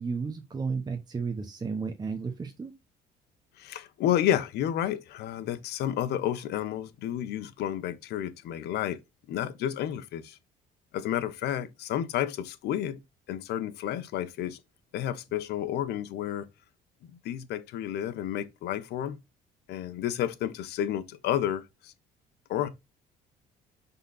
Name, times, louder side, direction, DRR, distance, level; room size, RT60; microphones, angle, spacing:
voice 1, 0.0-2.7, right 5 dB, 25° right, 1.1 m, -33 dB
voice 2, 3.6-9.0 9.3-10.4 10.9-13.0 13.3-14.6 14.9-16.5 17.0-19.2 19.7-21.9 22.5-22.7, left 11 dB, 75° left, 1.0 m, -31 dB
6.9 x 4.1 x 4.0 m
cardioid pair, 110°, 17 cm